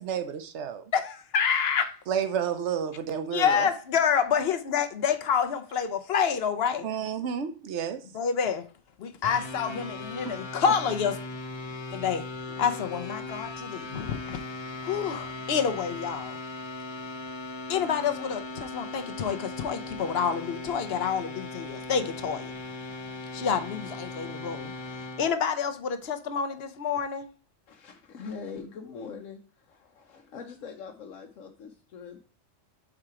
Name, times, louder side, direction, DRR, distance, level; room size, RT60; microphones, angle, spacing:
voice 1, 0.0-0.8 2.1-3.7 6.8-8.0 10.2-10.4, right 7 dB, 65° right, 1.0 m, -30 dB
voice 2, 0.9-2.0 3.3-6.9 8.1-8.7 9.0-11.2 11.9-14.4 14.8-16.4 17.7-22.5 23.3-24.7 25.0-27.3, left 7 dB, 60° left, 0.9 m, -28 dB
sound 1, 9.2-25.3, left 2 dB, 30° left, 0.5 m, -38 dB
voice 3, 27.7-29.4 29.7-32.2, left 5 dB, 90° left, 1.2 m, -42 dB
4.9 x 4.4 x 4.7 m
omnidirectional pair, 1.3 m